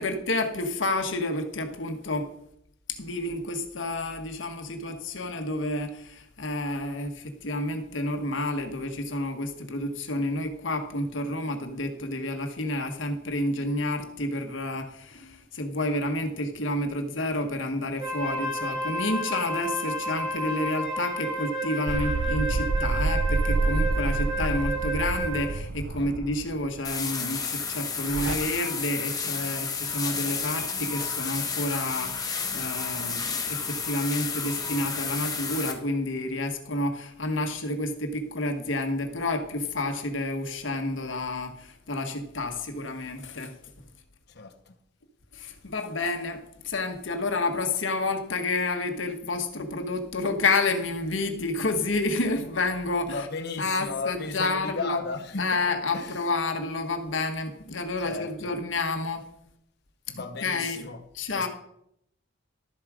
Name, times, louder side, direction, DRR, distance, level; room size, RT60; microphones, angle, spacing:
voice 1, 0.0-2.3 2.9-43.6 45.3-53.3 53.6-55.0 55.4-59.2 60.2-60.9 61.1-61.5, left 2 dB, 75° left, 1.3 m, -30 dB
Wind instrument woodwind instrument, 18.0-25.6, equal, 20° right, 3.0 m, -31 dB
sound 1, 21.9-26.8 28.1-28.4, right 3 dB, 70° right, 0.7 m, -28 dB
sound 2, 26.8-35.7, left 5 dB, 20° left, 1.3 m, -31 dB
voice 2, 44.3-44.7 53.1-55.6 55.9-56.3 58.0-58.6 60.1-61.0 61.3-61.5, left 4 dB, 55° left, 1.0 m, -35 dB
12.5 x 7.3 x 4.9 m
head